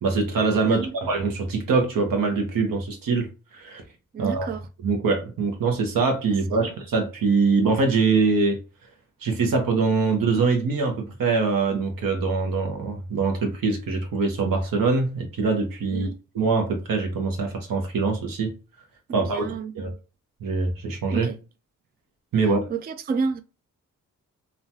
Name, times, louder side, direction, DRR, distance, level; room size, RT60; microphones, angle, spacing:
voice 1, 0.0-3.3 3.5-3.8 4.2-4.5 4.8-8.6 9.2-16.1 16.3-18.5 19.1-19.5 19.7-19.9 20.4-21.3 22.3-22.7, right 4 dB, 75° right, 0.9 m, -23 dB
voice 2, 4.1-4.6 6.5-6.6 15.9-16.1 19.1-19.7 21.1-21.4 22.7-23.4, right 5 dB, 30° right, 0.3 m, -30 dB
3.1 x 2.2 x 2.7 m
cardioid pair, 55°, 34 cm